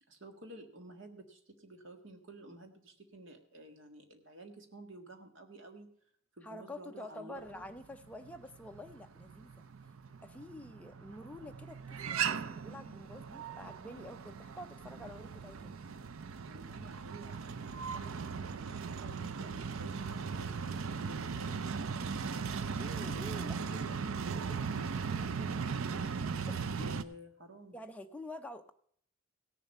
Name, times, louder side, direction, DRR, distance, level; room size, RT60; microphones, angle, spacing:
voice 1, 0.1-5.9 6.3-7.6 16.4-27.8, right 2 dB, 65° right, 5 dB, 1.7 m, -52 dB
voice 2, 6.4-9.5 10.2-15.8 22.7-23.6 26.4-27.0 27.7-28.7, left 1 dB, 5° left, 5 dB, 0.6 m, -48 dB
sound 1, 7.5-27.0, right 5 dB, 80° right, 0.5 m, -38 dB
17.0 x 7.0 x 5.4 m, 0.62 s
head